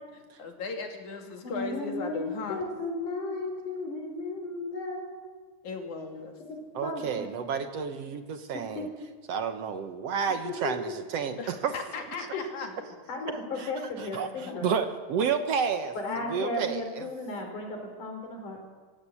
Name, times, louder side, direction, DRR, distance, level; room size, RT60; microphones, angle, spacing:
voice 1, 0.4-2.6 5.6-6.4 11.4-12.8 14.3-14.7 16.1-16.5, left 4 dB, 70° left, 3 dB, 4.0 m, -37 dB
voice 2, 1.4-5.2 6.8-7.4 8.5-8.9 10.5-10.7 12.3-12.4 12.8-14.8 16.0-18.7, left 2 dB, 90° left, 3 dB, 5.6 m, -35 dB
voice 3, 6.8-8.9 9.3-11.7 13.6-13.7 14.0-14.3 14.6-15.9 16.3-17.1, right 6 dB, 60° right, 8 dB, 2.0 m, -30 dB
27.0 x 15.5 x 8.5 m, 1.5 s
omnidirectional pair, 3.5 m